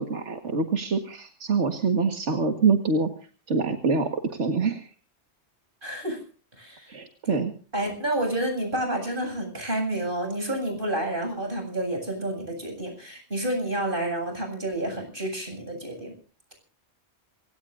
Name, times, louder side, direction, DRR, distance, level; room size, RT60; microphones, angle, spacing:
voice 1, 0.0-3.1 3.5-4.9 6.9-7.5, right 4 dB, 90° right, 5 dB, 2.1 m, -25 dB
voice 2, 5.8-6.2 6.6-7.4 7.7-16.1, right 1 dB, 50° right, 5 dB, 8.1 m, -30 dB
27.5 x 17.5 x 2.6 m, 0.37 s
omnidirectional pair, 1.2 m